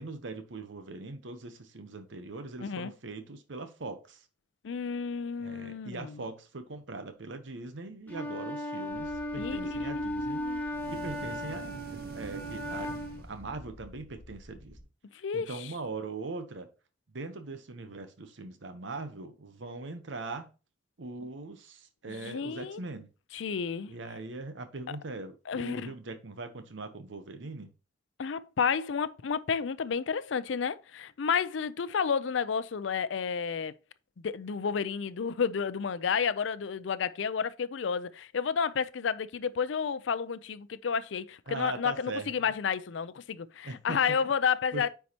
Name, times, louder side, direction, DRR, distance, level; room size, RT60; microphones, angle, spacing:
voice 1, 0.0-4.2 5.4-10.5 10.9-14.8 15.3-16.7 17.1-20.5 21.0-23.1 23.9-27.7 41.5-42.3 43.6-44.2 44.7-44.9, right 3 dB, 80° right, 0.9 m, -41 dB
voice 2, 2.6-2.9 4.6-6.2 9.4-10.6 15.2-15.7 22.1-22.8 23.3-23.9 24.9-25.0 25.5-25.9 28.2-33.7 34.2-44.9, left 6 dB, 80° left, 0.5 m, -31 dB
Wind instrument woodwind instrument, 8.1-13.3, equal, 10° left, 1.0 m, -36 dB
sound 1, 8.9-14.8, left 1 dB, 15° right, 3.1 m, -51 dB
sound 2, 10.7-13.9, right 3 dB, 50° right, 0.5 m, -46 dB
9.5 x 4.6 x 2.9 m
head